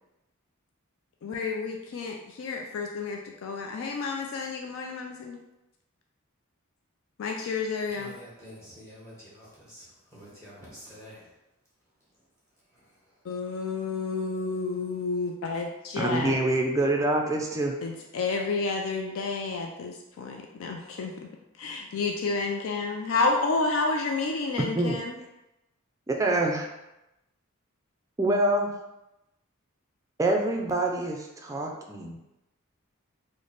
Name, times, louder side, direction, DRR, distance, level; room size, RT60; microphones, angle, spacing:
voice 1, 1.2-5.4 7.2-8.2 13.2-16.4 17.8-21.3 21.6-25.2, left 3 dB, 65° left, 2 dB, 0.3 m, -30 dB
voice 2, 7.9-11.3 12.7-12.9, equal, 15° left, -8 dB, 1.1 m, -48 dB
voice 3, 16.0-17.7 24.8-25.0 26.1-26.7 28.2-28.7 30.2-32.2, right 2 dB, 15° right, 1 dB, 0.4 m, -26 dB
3.2 x 2.1 x 3.9 m, 0.92 s
head